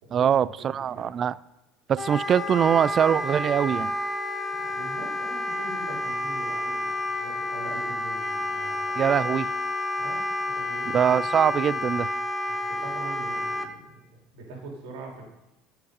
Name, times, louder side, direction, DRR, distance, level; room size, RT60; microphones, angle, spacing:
voice 1, 0.1-1.3 1.9-3.9 9.0-9.5 10.9-12.1, right 8 dB, 40° right, 21 dB, 0.4 m, -23 dB
voice 2, 0.7-1.1 4.5-9.0 10.0-10.3 10.5-10.9 12.5-13.9 14.3-15.2, right 3 dB, 75° right, -1 dB, 3.5 m, -42 dB
Wind instrument woodwind instrument, 2.0-13.7, left 1 dB, 15° left, 1.0 m, -30 dB
15.0 x 6.1 x 5.2 m, 0.95 s
supercardioid pair, 90°, 0 cm